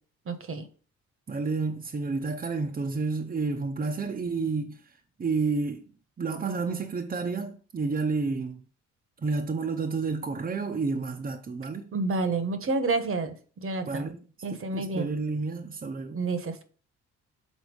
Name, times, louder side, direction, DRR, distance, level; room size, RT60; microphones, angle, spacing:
voice 1, 0.3-0.7 11.9-14.1 14.4-15.1 16.1-16.6, right 3 dB, 45° right, 1.1 m, -29 dB
voice 2, 1.3-5.8 6.2-8.6 9.2-11.9 13.8-14.2 14.5-16.2, right 4 dB, 30° right, 0.8 m, -30 dB
6.4 x 4.0 x 5.2 m
cardioid pair, 90°, 30 cm